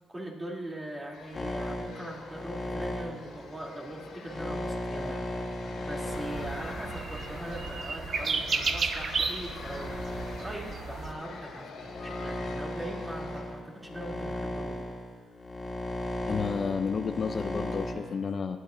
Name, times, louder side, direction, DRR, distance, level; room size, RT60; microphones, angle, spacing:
voice 1, 0.1-14.8, right 1 dB, 15° right, -2 dB, 2.9 m, -41 dB
sound 1, 1.1-13.4, left 4 dB, 80° left, 2.9 m, -45 dB
sound 2, 1.4-8.7 9.3-17.9, left 1 dB, 30° left, 2.6 m, -36 dB
sound 3, 6.1-11.1, right 5 dB, 50° right, 0.8 m, -33 dB
voice 2, 16.3-18.6, left 5 dB, 45° left, 8 dB, 0.5 m, -31 dB
19.0 x 11.5 x 2.6 m, 1.5 s
cardioid pair, 90°, 0 cm